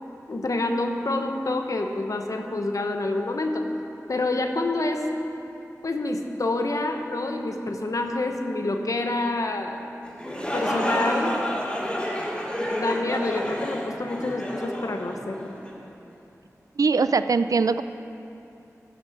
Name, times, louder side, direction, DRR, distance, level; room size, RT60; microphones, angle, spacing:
voice 1, 0.3-3.7 4.1-5.1 5.8-9.9 10.5-11.4 12.7-15.5, left 2 dB, 70° left, 4 dB, 1.0 m, -27 dB
sound 1, 10.0-15.8, equal, 20° left, 2.6 m, -29 dB
voice 2, 16.8-17.8, right 4 dB, 75° right, 12 dB, 0.3 m, -21 dB
14.5 x 6.3 x 6.5 m, 2.8 s
wide cardioid pair, 55°, 6 cm